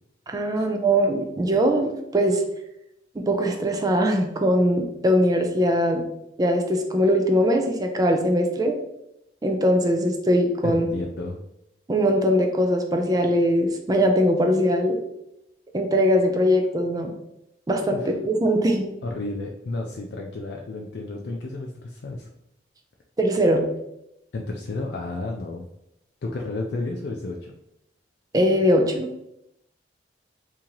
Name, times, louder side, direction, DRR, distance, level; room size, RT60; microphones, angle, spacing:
voice 1, 0.3-2.4 3.2-6.0 6.4-8.7 9.4-10.9 11.9-15.0 15.7-17.1 17.7-18.9 23.2-23.6 28.3-29.1, equal, 20° right, 3 dB, 0.4 m, -21 dB
voice 2, 10.6-11.4 17.9-18.1 19.0-22.3 24.3-25.7 26.2-27.5, left 2 dB, 65° left, 0 dB, 0.4 m, -32 dB
2.9 x 2.8 x 3.8 m, 0.83 s
head